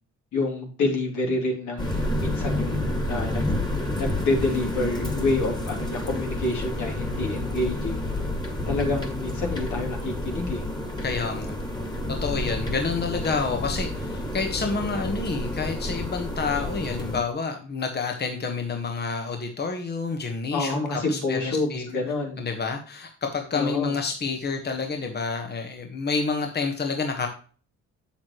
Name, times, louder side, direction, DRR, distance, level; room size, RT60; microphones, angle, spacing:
voice 1, 0.3-3.4 3.9-8.0 8.7-10.7 12.4-12.7 20.5-22.4 23.5-24.0, left 2 dB, 70° left, 0 dB, 3.3 m, -28 dB
sound 1, 1.8-17.2, left 1 dB, 15° left, 2.1 m, -29 dB
voice 2, 11.0-11.6 12.1-21.8 22.4-27.3, left 4 dB, 35° left, 4 dB, 1.3 m, -29 dB
7.5 x 7.2 x 3.1 m, 0.40 s
cardioid pair, 90°, 30 cm